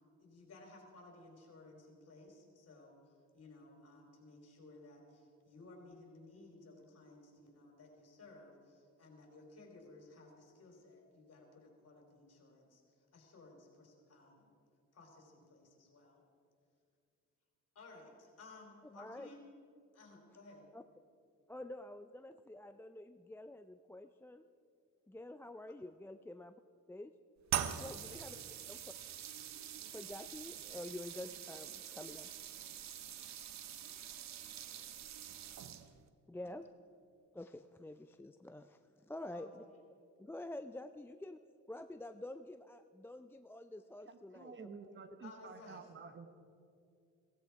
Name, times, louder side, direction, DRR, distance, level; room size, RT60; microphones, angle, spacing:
voice 1, 0.2-3.0 3.3-12.8 13.1-14.5 14.9-16.2 17.8-19.4 19.9-20.6 27.6-28.0 28.2-28.5 36.4-36.6 39.3-39.5 45.2-45.9, left 2 dB, 55° left, 1 dB, 4.0 m, -57 dB
voice 2, 19.0-19.3 20.7-20.8 21.5-24.5 25.1-26.5 26.9-27.1 27.8-28.9 29.9-32.3 36.3-36.7 37.3-39.6 40.2-41.4 41.7-44.5, left 1 dB, 10° left, 9 dB, 0.4 m, -48 dB
sound 1, 27.5-36.1, right 10 dB, 65° right, 0.9 m, -44 dB
voice 3, 44.1-46.3, right 4 dB, 40° right, 9 dB, 1.1 m, -51 dB
16.5 x 15.5 x 4.7 m, 2.4 s
cardioid pair, 90°, 30 cm